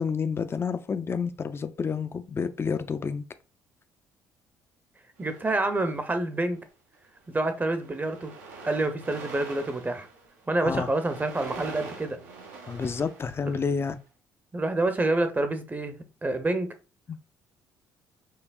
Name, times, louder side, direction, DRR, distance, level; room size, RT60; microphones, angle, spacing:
voice 1, 0.0-3.2 10.6-10.9 12.7-14.0 17.1-17.2, left 5 dB, 30° left, 0.4 m, -29 dB
voice 2, 5.2-6.6 7.3-8.3 8.6-10.1 10.5-12.2 14.5-16.7, right 2 dB, 20° right, 0.6 m, -27 dB
sound 1, 5.2-6.2 6.9-7.2 7.4-13.9, right 4 dB, 85° right, 0.8 m, -44 dB
5.6 x 2.0 x 2.3 m
hypercardioid pair, 55°, 9 cm